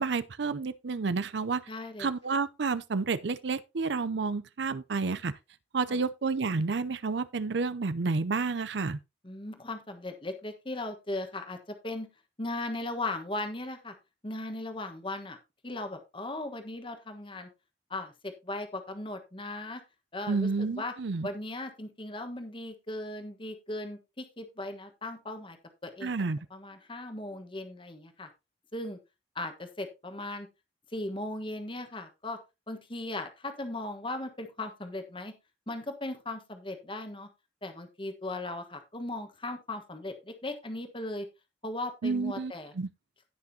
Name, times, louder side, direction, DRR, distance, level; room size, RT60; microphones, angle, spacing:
voice 1, 0.0-1.6 2.0-5.4 5.7-9.0 20.3-21.3 26.0-26.4 42.0-42.9, right 4 dB, 70° right, 0.5 m, -30 dB
voice 2, 1.7-2.1 5.9-6.0 9.2-11.6 11.8-12.1 12.4-13.9 14.2-15.4 15.6-17.5 17.9-19.8 20.1-20.5 20.8-20.9 21.2-25.6 25.8-26.1 26.5-28.3 28.7-29.0 29.3-30.5 30.9-32.4 32.7-35.3 35.7-37.3 37.6-41.3 41.6-42.7, left 2 dB, 25° left, 1.3 m, -37 dB
17.0 x 6.0 x 2.8 m
head